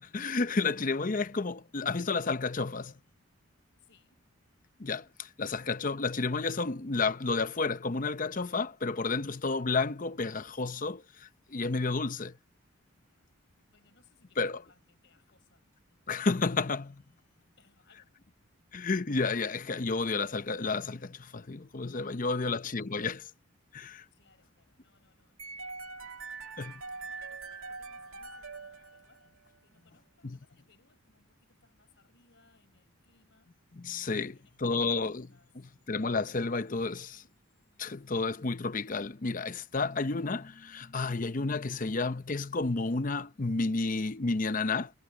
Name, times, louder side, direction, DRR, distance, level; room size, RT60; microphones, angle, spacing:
voice 1, 0.0-2.9 4.8-12.4 14.4-14.6 16.1-17.0 18.7-23.3 23.7-24.0 26.6-26.7 30.2-30.4 33.7-37.2 37.8-44.9, left 3 dB, 40° left, 0.7 m, -31 dB
voice 2, 3.8-4.2 13.1-13.3 13.7-15.6 17.6-18.2 24.1-33.6 34.1-35.5, left 4 dB, 60° left, 5.0 m, -67 dB
sound 1, 25.4-29.5, right 4 dB, 80° right, 2.5 m, -43 dB
head